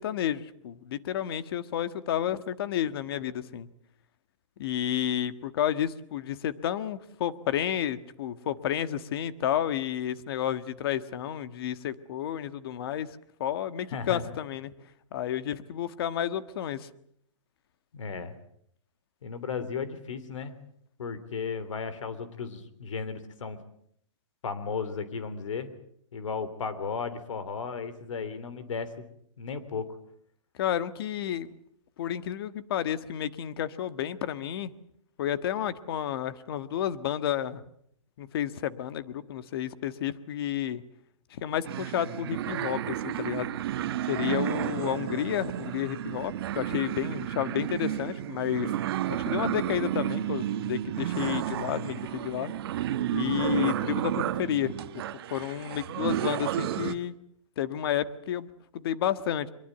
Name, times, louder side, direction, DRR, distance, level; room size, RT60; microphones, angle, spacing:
voice 1, 0.0-3.7 4.6-13.1 13.4-14.7 15.1-16.9 30.6-31.5 32.0-34.7 35.2-37.6 38.2-40.8 41.3-43.5 44.1-48.7 49.1-52.5 53.1-54.7 55.3-57.1 57.6-59.5, left 10 dB, 50° left, 13 dB, 1.5 m, -31 dB
voice 2, 13.9-14.3 17.9-18.4 19.2-20.6 21.0-23.6 24.4-25.7 26.1-29.0 29.4-29.9, left 5 dB, 75° left, 13 dB, 3.2 m, -35 dB
sound 1, 41.6-56.9, right 12 dB, 50° right, 1.4 m, -32 dB
23.5 x 22.5 x 8.0 m, 0.68 s
hypercardioid pair, 155°, 16 cm